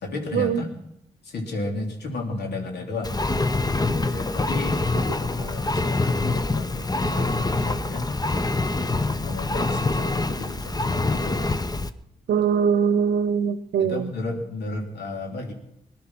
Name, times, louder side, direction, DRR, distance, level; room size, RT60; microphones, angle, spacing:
voice 1, 0.0-0.7 1.2-3.2 4.1-4.7 5.1-8.1 9.0-11.5 13.8-15.5, left 2 dB, 75° left, 2 dB, 3.2 m, -33 dB
Engine, 3.0-11.9, left 2 dB, 25° left, 1.0 m, -25 dB
voice 2, 12.3-14.1, right 7 dB, 75° right, 15 dB, 0.8 m, -22 dB
20.0 x 11.5 x 6.1 m, 0.82 s
supercardioid pair, 45°, 17 cm